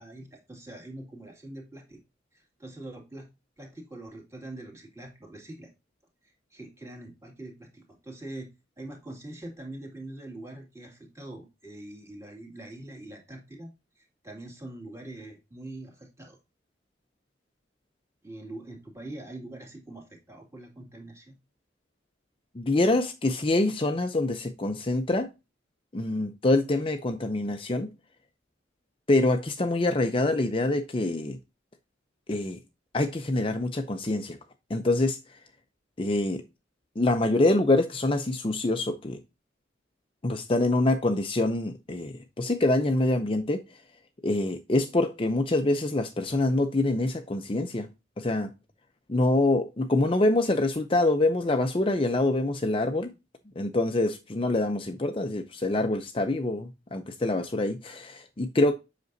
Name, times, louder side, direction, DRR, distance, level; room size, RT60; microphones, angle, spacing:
voice 1, 0.0-2.0 2.3-3.3 3.6-5.7 6.2-13.7 14.0-16.4 18.2-21.4, right 1 dB, 15° right, 2.4 m, -43 dB
voice 2, 22.6-25.3 25.9-27.9 29.1-31.4 32.3-32.6 32.9-34.4 34.7-35.2 36.0-36.4 37.0-39.2 40.2-43.6 44.2-47.9 48.2-48.5 49.1-53.1 53.6-58.7, left 2 dB, 30° left, 0.6 m, -25 dB
8.0 x 5.9 x 2.6 m
head